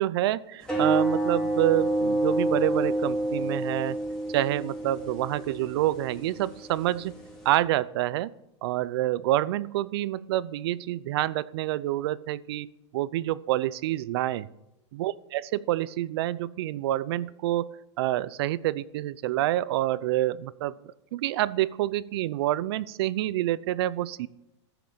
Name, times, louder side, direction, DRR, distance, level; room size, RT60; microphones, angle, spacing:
voice 1, 0.0-4.0 4.3-7.2 7.4-8.3 8.6-14.5 14.9-15.4 15.7-20.7 21.1-24.3, right 15 dB, 55° right, 20 dB, 0.5 m, -27 dB
sound 1, 0.6-7.6, right 1 dB, 5° left, 2.4 m, -29 dB
13.5 x 6.0 x 6.8 m, 0.91 s
supercardioid pair, 155°, 15 cm